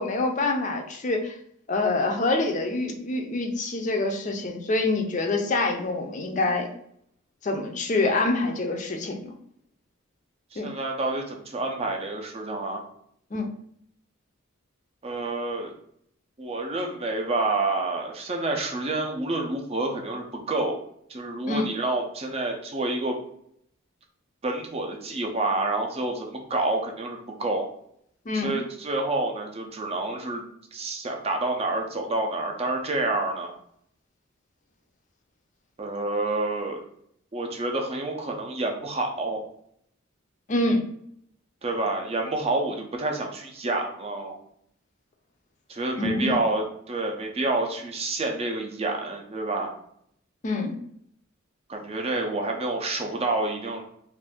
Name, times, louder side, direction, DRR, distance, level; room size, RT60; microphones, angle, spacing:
voice 1, 0.0-1.4 1.7-6.7 7.4-9.3 10.6-10.7 13.3-13.5 21.5-21.7 28.3-28.5 40.5-40.9 46.0-46.4 50.4-50.7, left 2 dB, 35° left, 3 dB, 0.4 m, -26 dB
voice 2, 10.5-12.8 15.0-15.7 16.4-20.8 21.1-23.1 24.4-27.7 28.3-30.4 30.7-33.5 35.8-36.8 37.3-39.4 41.6-44.4 45.7-49.7 51.7-53.8, right 2 dB, 30° right, 2 dB, 0.5 m, -28 dB
2.5 x 2.5 x 3.5 m, 0.70 s
head